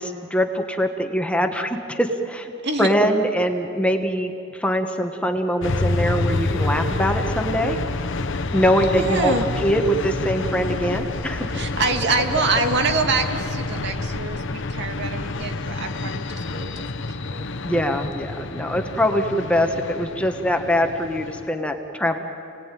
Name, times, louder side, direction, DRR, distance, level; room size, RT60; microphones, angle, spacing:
voice 1, 0.0-2.5 2.8-7.8 8.5-9.3 9.6-11.6 17.6-22.2, equal, 5° left, 4 dB, 1.3 m, -23 dB
sound 1, 5.6-21.5, left 2 dB, 65° left, 1.0 m, -28 dB
voice 2, 9.0-9.5 11.5-17.5, right 3 dB, 60° right, 5 dB, 2.0 m, -25 dB
28.5 x 18.5 x 9.2 m, 2.8 s
head